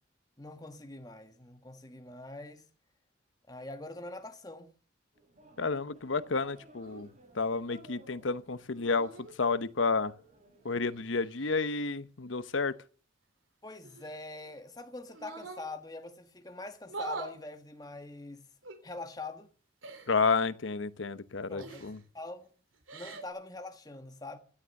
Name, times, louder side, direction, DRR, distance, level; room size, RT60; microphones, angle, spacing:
voice 1, 0.4-2.7 3.5-4.7 13.6-18.5 18.8-19.5 21.5-22.5 22.9-24.4, left 2 dB, 20° left, 1.3 m, -44 dB
sound 1, 5.1-11.1, right 1 dB, 35° right, 6.3 m, -58 dB
voice 2, 5.6-7.1 7.3-10.1 10.6-12.7 20.1-22.0, left 4 dB, 75° left, 0.9 m, -31 dB
sound 2, 6.8-7.1 8.7-9.3 10.7-11.8 13.8-14.6 15.1-15.7 16.8-17.4 18.6-18.8 19.8-20.2 21.6-22.0 22.7-23.3, right 3 dB, 85° right, 3.6 m, -44 dB
16.5 x 11.5 x 6.6 m
head